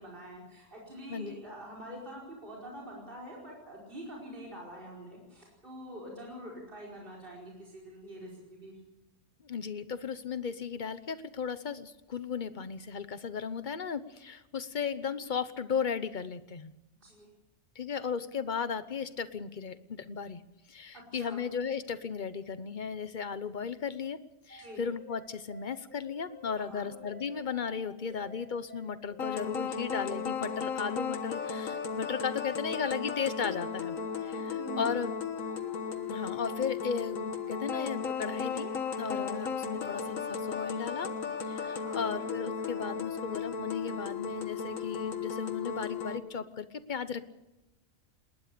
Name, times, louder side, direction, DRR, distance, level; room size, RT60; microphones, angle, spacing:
voice 1, 0.0-8.7 17.0-17.3 20.9-21.4 24.6-24.8 26.5-26.9 34.3-35.0 41.7-42.2, equal, 40° right, -4 dB, 5.1 m, -45 dB
voice 2, 9.4-16.7 17.7-20.4 20.7-24.2 24.5-34.0 34.2-35.1 36.1-38.7 39.0-41.1 41.5-47.3, left 6 dB, 40° left, 13 dB, 1.0 m, -35 dB
sound 1, 24.5-43.3, left 1 dB, 5° left, 5.1 m, -51 dB
sound 2, 29.2-46.2, left 6 dB, 70° left, 1.7 m, -35 dB
20.0 x 19.0 x 6.8 m, 0.96 s
omnidirectional pair, 1.5 m